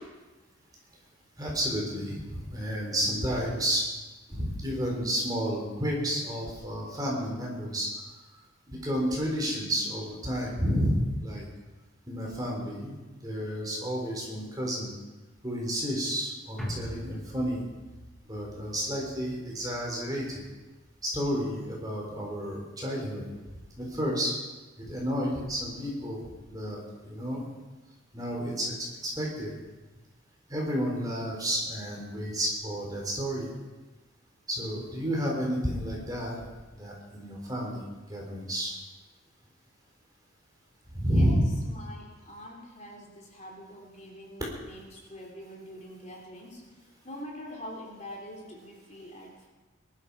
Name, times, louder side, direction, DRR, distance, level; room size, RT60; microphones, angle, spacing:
voice 1, 1.4-3.8 4.3-7.9 8.7-11.5 12.1-13.0 13.2-14.9 15.4-17.6 18.3-20.4 21.0-23.2 23.8-24.3 24.9-26.2 26.5-26.8 27.0-27.5 28.1-28.7 29.1-29.5 30.5-33.5 34.5-36.4 36.8-37.8 38.1-38.7 40.9-41.4, equal, 20° right, -2 dB, 4.0 m, -31 dB
sound 1, 16.6-21.0 21.4-21.5, equal, ahead, 2.3 m, -43 dB
voice 2, 41.0-49.5, equal, 35° left, -2 dB, 3.3 m, -45 dB
21.5 x 12.5 x 4.9 m, 1.2 s
head